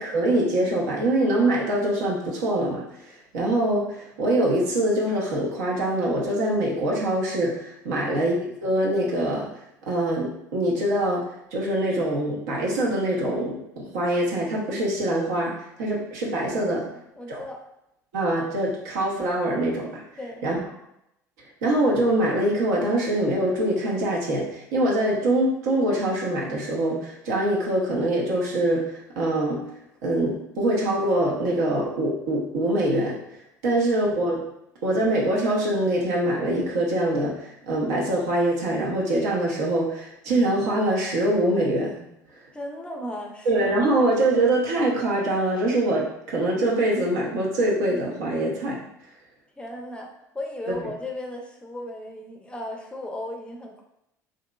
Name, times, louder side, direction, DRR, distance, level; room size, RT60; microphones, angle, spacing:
voice 1, 0.0-9.5 9.9-16.9 17.3-17.4 18.1-20.0 20.4-20.6 21.6-29.7 30.0-33.2 33.6-34.4 34.8-42.1 43.5-48.8 50.7-50.9, right 1 dB, 70° right, -3 dB, 0.7 m, -24 dB
voice 2, 16.8-17.6 20.2-20.7 33.7-33.8 42.5-44.1 49.6-53.8, left 1 dB, 10° left, 1 dB, 0.5 m, -36 dB
2.8 x 2.5 x 2.3 m, 0.82 s
figure-of-eight pair, 65°, 9 cm